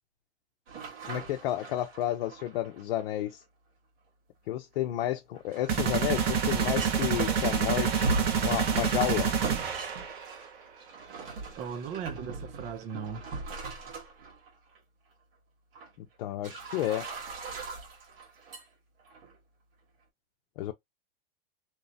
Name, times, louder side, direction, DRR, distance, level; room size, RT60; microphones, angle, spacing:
sound 1, 0.7-3.3 5.4-14.5 14.7-14.8 15.7-15.9 16.4-18.6 19.0-19.3, right 3 dB, 75° right, 1.4 m, -39 dB
voice 1, 1.1-3.4 4.5-9.3 16.0-17.1 20.6-20.7, left 12 dB, 70° left, 0.7 m, -31 dB
sound 2, 5.7-10.4, right 7 dB, 90° right, 1.2 m, -27 dB
voice 2, 11.5-13.2, right 7 dB, 25° right, 0.4 m, -37 dB
3.0 x 2.1 x 2.7 m
supercardioid pair, 135°, 29 cm